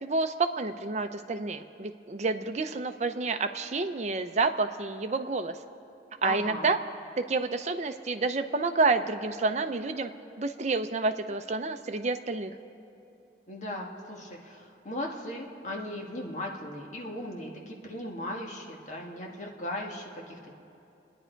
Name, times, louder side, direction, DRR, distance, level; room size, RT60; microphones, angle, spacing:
voice 1, 0.0-5.6 6.2-6.8 7.2-10.1 10.4-12.5, right 3 dB, 40° right, 7 dB, 0.7 m, -29 dB
voice 2, 6.2-6.7 13.5-20.5, left 1 dB, 40° left, 0 dB, 1.7 m, -37 dB
28.5 x 10.0 x 4.6 m, 2.7 s
head